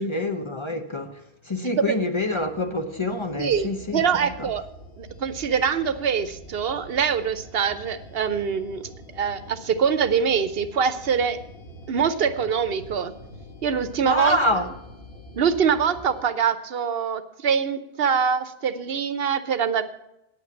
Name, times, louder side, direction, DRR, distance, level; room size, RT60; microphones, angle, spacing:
voice 1, 0.0-4.5 14.1-14.7, left 2 dB, 30° left, 0.8 m, -27 dB
sound 1, 2.1-16.2, equal, 80° left, 1.4 m, -45 dB
voice 2, 3.4-4.6 5.0-8.8 9.1-11.4 11.9-13.1 13.6-14.4 15.4-19.8, right 7 dB, 70° right, 1.0 m, -24 dB
9.4 x 8.2 x 7.2 m
omnidirectional pair, 1.0 m